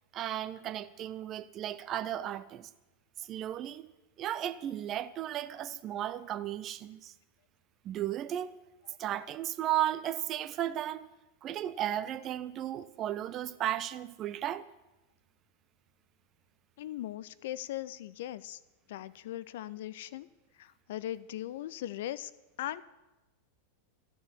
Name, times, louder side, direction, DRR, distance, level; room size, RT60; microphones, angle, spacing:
voice 1, 0.1-2.7 3.2-3.9 4.2-7.1 7.8-8.6 9.0-11.1 11.4-14.7, right 12 dB, 30° right, 0.6 m, -35 dB
voice 2, 16.8-18.6 18.9-20.3 20.6-22.3 22.6-22.8, left 13 dB, 55° left, 0.5 m, -39 dB
13.5 x 6.9 x 9.6 m
figure-of-eight pair, 90°, 0 cm